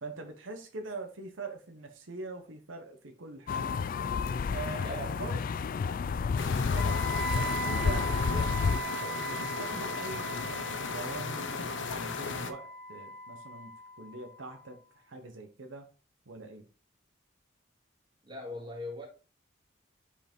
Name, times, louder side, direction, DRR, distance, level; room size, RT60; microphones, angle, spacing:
voice 1, 0.0-3.8 4.5-5.4 6.5-13.7 14.0-14.8 15.0-15.9 16.3-16.6, right 3 dB, 80° right, 1.0 m, -43 dB
sound 1, 3.5-8.8, left 5 dB, 45° left, 0.3 m, -30 dB
voice 2, 4.8-5.2 18.2-19.1, left 1 dB, 25° right, 2.0 m, -40 dB
sound 2, 6.4-12.5, left 4 dB, 70° left, 0.7 m, -36 dB
Wind instrument woodwind instrument, 6.8-14.7, right 2 dB, ahead, 0.7 m, -39 dB
5.6 x 4.9 x 4.5 m
head